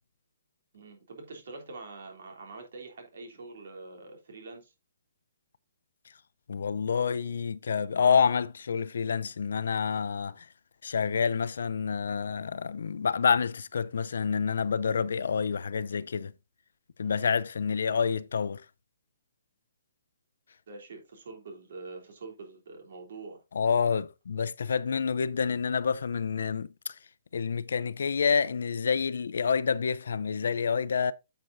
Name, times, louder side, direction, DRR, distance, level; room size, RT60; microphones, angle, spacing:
voice 1, 0.7-4.7 17.0-17.4 20.7-23.4, right 3 dB, 50° right, 3.2 m, -45 dB
voice 2, 6.5-10.4 10.8-16.3 17.0-18.6 23.5-26.7 27.3-31.1, left 6 dB, 65° left, 0.5 m, -28 dB
10.0 x 7.7 x 2.6 m
hypercardioid pair, 175°, 0 cm